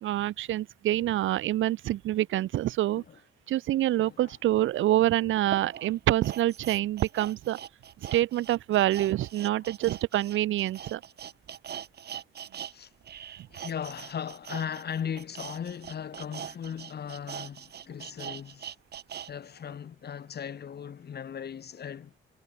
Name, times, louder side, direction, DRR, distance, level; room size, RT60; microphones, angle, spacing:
voice 1, 0.0-3.0 3.5-7.6 8.1-11.0, right 14 dB, 80° right, 1.1 m, -26 dB
voice 2, 4.0-4.3 12.7-12.9 13.5-18.7 19.3-22.2, left 8 dB, 55° left, 6.5 m, -38 dB
sound 1, 4.6-4.7 5.4-12.7 13.0-19.3 19.7-19.8, right 9 dB, 55° right, 1.6 m, -42 dB
cardioid pair, 90°, 20 cm